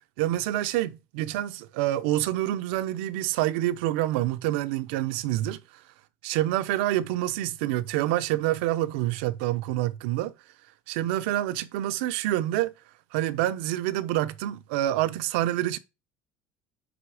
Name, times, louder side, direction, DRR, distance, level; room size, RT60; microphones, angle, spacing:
voice 1, 0.2-5.6 6.2-10.3 10.9-12.7 13.1-15.8, right 14 dB, 90° right, 0.7 m, -27 dB
9.5 x 3.4 x 4.8 m
cardioid pair, 155°, 6 cm